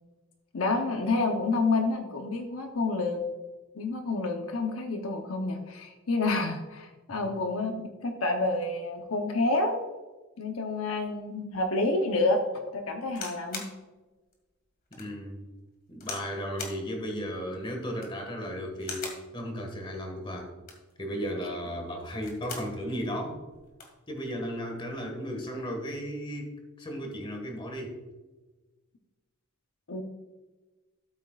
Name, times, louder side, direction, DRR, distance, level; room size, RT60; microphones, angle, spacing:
voice 1, 0.5-3.3 3.8-9.8 10.4-12.4 12.7-13.6 29.9-30.0, left 2 dB, 70° left, 4 dB, 0.9 m, -28 dB
sound 1, 13.1-13.8 14.3-14.4 14.9-15.1 16.0-16.3 16.6-16.8 17.8-18.2 18.8-19.3 20.5-20.9 22.0-22.7 23.1-23.2 23.5-24.0 24.8-25.1, left 4 dB, 40° left, 2.0 m, -40 dB
voice 2, 14.9-15.5 15.9-19.1 19.3-20.5 21.0-23.4 24.1-28.0, equal, 25° left, 3 dB, 1.8 m, -35 dB
13.0 x 8.6 x 2.5 m, 1.2 s
head